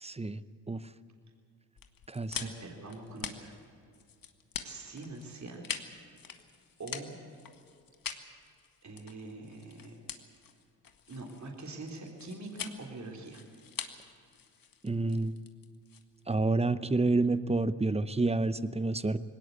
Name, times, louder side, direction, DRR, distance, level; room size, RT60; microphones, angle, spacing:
voice 1, 0.0-0.4 0.7-0.8 2.1-2.5 14.8-15.4 16.3-19.2, right 3 dB, 15° right, 16 dB, 0.7 m, -29 dB
sound 1, 1.8-16.4, left 7 dB, 50° left, 1.8 m, -44 dB
voice 2, 2.3-3.5 4.6-5.7 6.8-7.2 8.8-10.0 11.1-13.4, right 2 dB, 40° right, 1 dB, 3.7 m, -44 dB
19.5 x 18.0 x 8.2 m, 2.4 s
supercardioid pair, 65°, 44 cm